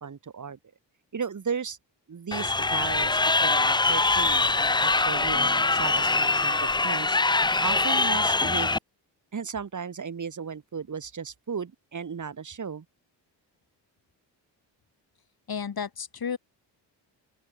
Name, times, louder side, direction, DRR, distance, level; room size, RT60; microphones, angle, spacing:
voice 1, 0.0-0.6 1.1-1.8 2.1-7.2 7.6-8.7 9.3-12.8, right 6 dB, 40° right, 2.5 m, -35 dB
Crowd, 2.3-8.8, left 3 dB, 10° left, 0.5 m, -23 dB
voice 2, 15.5-16.4, left 6 dB, 50° left, 6.8 m, -32 dB
open air
cardioid pair, 70°, 45 cm